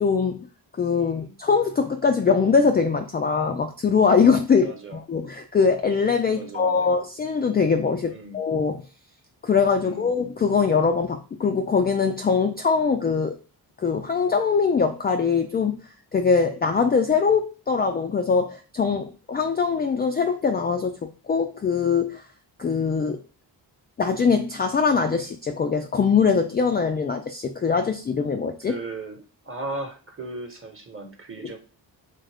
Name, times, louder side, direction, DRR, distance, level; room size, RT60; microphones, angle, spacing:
voice 1, 0.0-0.5 0.8-8.8 9.4-13.4 13.8-15.8 16.1-22.2 22.6-23.2 24.0-28.7, left 5 dB, 25° left, 5 dB, 0.3 m, -22 dB
voice 2, 1.0-1.3 4.6-5.0 6.4-7.0 8.1-8.4 9.8-10.2 28.7-31.6, right 2 dB, 30° right, 4 dB, 1.0 m, -37 dB
2.6 x 2.4 x 3.4 m, 0.35 s
supercardioid pair, 50°, 46 cm